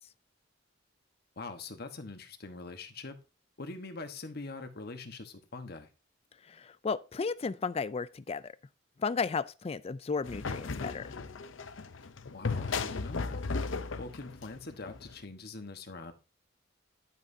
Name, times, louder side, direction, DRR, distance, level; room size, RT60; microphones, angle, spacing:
voice 1, 1.4-3.2 3.6-5.9 12.3-13.5 14.0-16.1, left 3 dB, 55° left, 1.3 m, -43 dB
voice 2, 6.5-8.5 9.0-11.1, left 5 dB, 30° left, 0.4 m, -34 dB
sound 1, 10.2-15.1, left 4 dB, 80° left, 0.7 m, -36 dB
11.5 x 8.3 x 2.8 m
head